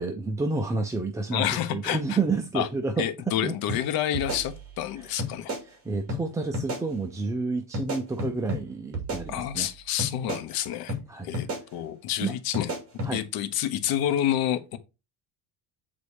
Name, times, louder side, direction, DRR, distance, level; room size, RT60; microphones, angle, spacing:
voice 1, 0.0-3.5 5.0-5.1 5.7-9.7 11.1-11.3 12.2-12.3 13.0-13.2, right 3 dB, 10° right, 0.3 m, -30 dB
voice 2, 1.3-2.2 2.5-2.7 3.0-5.5 9.3-11.0 11.2-12.7 13.0-14.8, left 11 dB, 60° left, 1.1 m, -28 dB
sound 1, 3.7-3.8 4.1-4.9 5.2-5.6 6.1-6.2 6.5-6.8 7.7-8.6 8.9-9.7 10.0-10.4 10.9-11.0 11.3-11.6 12.5-13.1, equal, 35° right, 2.9 m, -32 dB
8.4 x 4.0 x 4.9 m
cardioid pair, 160°, 40 cm